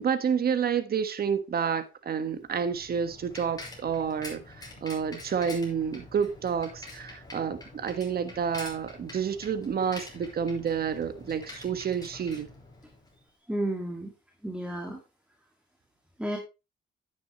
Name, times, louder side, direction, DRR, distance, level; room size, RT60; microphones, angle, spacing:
voice 1, 0.0-12.5, right 7 dB, 50° right, 1.4 m, -29 dB
Bicycle, 2.3-13.2, left 2 dB, 20° left, 5.4 m, -46 dB
voice 2, 13.5-14.1 14.4-15.0 16.2-16.4, right 1 dB, 5° right, 1.9 m, -31 dB
9.6 x 9.3 x 3.0 m
cardioid pair, 90°, 20 cm